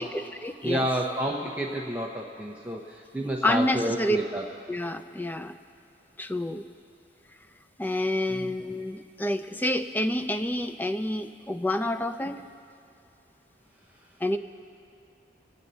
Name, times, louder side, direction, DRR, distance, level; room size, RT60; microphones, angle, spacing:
voice 1, 0.0-0.9 3.2-4.2 4.7-5.5 6.2-6.6 7.8-12.4 14.2-14.4, left 1 dB, 10° left, 9 dB, 0.4 m, -28 dB
voice 2, 0.6-4.4 8.3-8.4, equal, 10° right, -2 dB, 0.8 m, -30 dB
25.0 x 8.8 x 4.1 m, 2.6 s
head